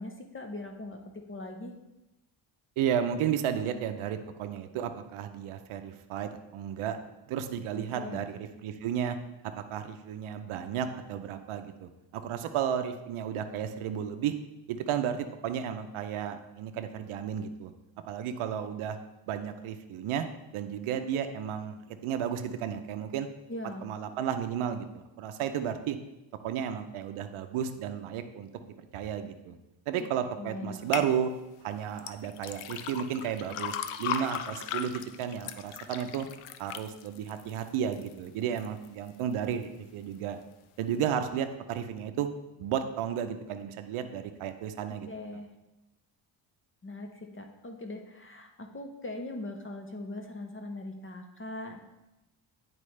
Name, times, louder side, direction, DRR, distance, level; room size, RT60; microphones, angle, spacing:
voice 1, 0.0-1.7 7.7-8.3 23.5-23.9 30.0-30.1 30.4-31.0 44.9-45.5 46.8-51.8, left 2 dB, 25° left, 4 dB, 0.8 m, -41 dB
voice 2, 2.8-7.0 7.3-9.2 9.5-14.3 14.7-17.7 18.1-19.0 19.3-20.3 20.5-23.3 23.8-26.0 26.4-29.6 29.9-31.3 31.6-33.7 34.0-36.3 36.6-40.4 40.8-42.3 42.6-45.1, right 9 dB, 90° right, 8 dB, 0.7 m, -33 dB
sound 1, 30.9-31.1 32.0-38.1 38.6-39.1 39.6-39.7, left 9 dB, 85° left, 0.6 m, -37 dB
9.9 x 4.4 x 3.2 m, 0.97 s
cardioid pair, 85°, 48 cm